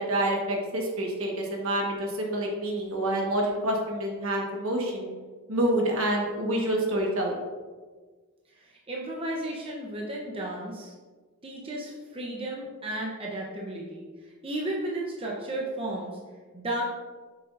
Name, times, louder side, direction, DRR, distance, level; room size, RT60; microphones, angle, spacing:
voice 1, 0.0-5.1 5.5-7.4, right 1 dB, 65° right, 0 dB, 1.4 m, -27 dB
voice 2, 8.5-10.9 11.4-16.2 16.5-16.8, right 1 dB, 25° right, -3 dB, 0.8 m, -34 dB
7.1 x 6.8 x 2.6 m, 1.4 s
head